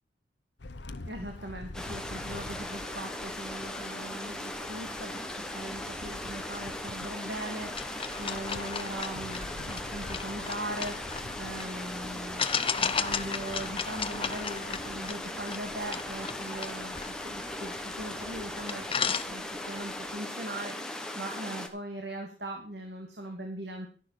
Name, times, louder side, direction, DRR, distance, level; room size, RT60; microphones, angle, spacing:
sound 1, 0.6-19.1, left 2 dB, 70° left, 1.0 m, -47 dB
voice 1, 1.0-17.0 17.2-23.9, right 1 dB, 60° right, 3 dB, 2.5 m, -40 dB
sound 2, 1.7-21.7, left 1 dB, 5° left, 1.4 m, -38 dB
sound 3, 7.7-11.7 12.4-18.0 18.4-18.5 18.7-19.8, left 7 dB, 30° left, 0.7 m, -34 dB
12.5 x 11.0 x 4.5 m, 0.42 s
head